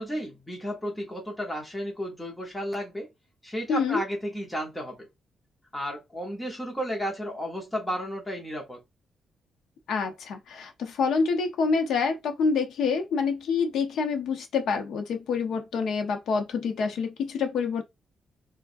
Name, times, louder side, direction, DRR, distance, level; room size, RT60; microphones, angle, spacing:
voice 1, 0.0-3.1 3.4-5.1 5.7-8.8, equal, 5° left, 1.0 m, -33 dB
voice 2, 3.7-4.0 9.9-17.8, left 5 dB, 75° left, 0.9 m, -27 dB
4.6 x 2.3 x 2.6 m
wide cardioid pair, 175°, 0 cm